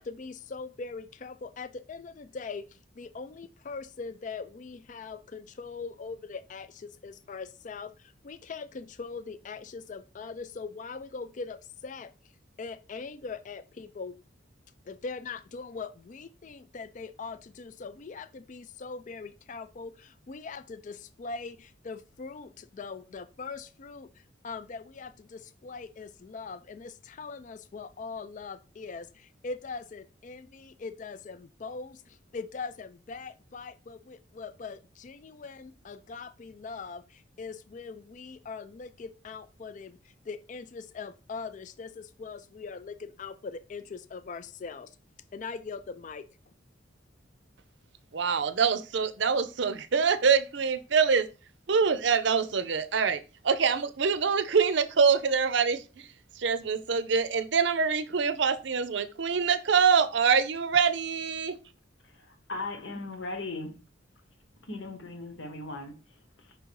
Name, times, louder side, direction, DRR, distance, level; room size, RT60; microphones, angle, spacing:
voice 1, 0.0-12.1 12.6-14.2 14.9-45.0 45.3-46.3, left 4 dB, 40° left, 0.4 m, -41 dB
voice 2, 48.1-51.3 51.7-56.1 56.4-61.6, right 6 dB, 65° right, 0.6 m, -25 dB
voice 3, 62.0-63.8 64.5-66.6, left 2 dB, 70° left, 1.2 m, -39 dB
5.6 x 3.9 x 4.6 m
head